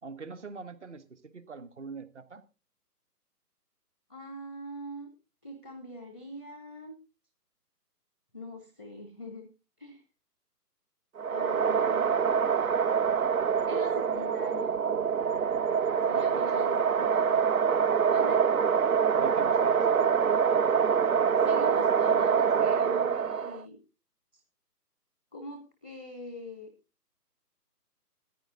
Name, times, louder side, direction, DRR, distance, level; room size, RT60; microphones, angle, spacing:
voice 1, 0.0-2.4 16.1-16.7 16.9-17.1 19.1-20.3, right 4 dB, 45° right, 14 dB, 1.4 m, -44 dB
voice 2, 4.1-5.1 5.4-7.0 8.3-9.5 9.8-10.0 11.3-12.4 13.5-14.8 16.0-17.5 18.1-18.5 21.4-23.8 24.3-24.4 25.3-26.7, left 1 dB, 5° right, 6 dB, 0.8 m, -43 dB
sound 1, 11.2-23.6, right 7 dB, 60° right, 0.7 m, -25 dB
14.5 x 9.7 x 3.7 m, 0.30 s
figure-of-eight pair, 145°, 48 cm